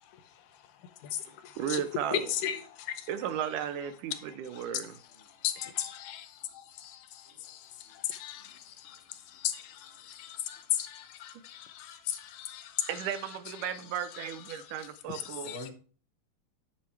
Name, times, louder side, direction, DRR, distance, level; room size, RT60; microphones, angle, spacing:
voice 1, 0.0-1.8 2.1-3.1 4.1-4.6 5.3-13.1 13.6-13.8 14.1-15.7, left 10 dB, 75° left, 2.2 m, -37 dB
voice 2, 1.6-2.3 3.1-4.9 12.9-15.5, right 9 dB, 80° right, 2.0 m, -35 dB
voice 3, 7.2-7.5 7.8-8.0 8.4-8.6 8.9-9.0 11.0-11.1 11.6-11.7 15.4-15.7, left 1 dB, 35° right, 1.1 m, -48 dB
10.0 x 8.4 x 3.2 m
omnidirectional pair, 3.9 m